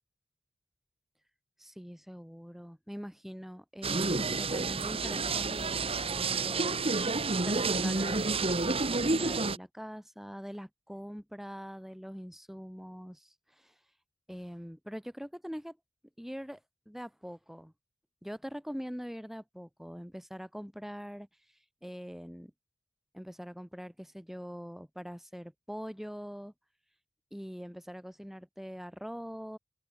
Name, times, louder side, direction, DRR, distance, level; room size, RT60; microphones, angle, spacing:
voice 1, 1.6-6.8 7.4-13.7 14.3-15.8 16.2-16.6 16.9-17.7 18.2-21.3 21.8-22.5 23.1-26.5 27.3-29.6, equal, ahead, 5.5 m, -43 dB
sound 1, 3.8-9.6, right 3 dB, 30° right, 1.6 m, -30 dB
open air
head